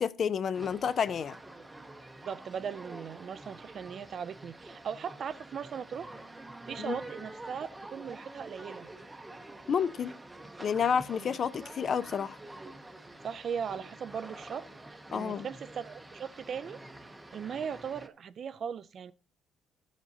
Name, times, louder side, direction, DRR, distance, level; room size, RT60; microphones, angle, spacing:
voice 1, 0.0-1.4 6.8-7.0 9.7-10.1 10.6-12.4 15.1-15.5, left 7 dB, 45° left, 0.4 m, -30 dB
sound 1, 0.5-18.1, right 2 dB, 10° right, 0.7 m, -47 dB
voice 2, 2.2-6.1 6.7-8.9 11.2-11.4 13.2-14.7 15.1-16.8 17.3-19.1, right 7 dB, 45° right, 0.4 m, -38 dB
14.0 x 7.2 x 2.7 m
cardioid pair, 140°, 0 cm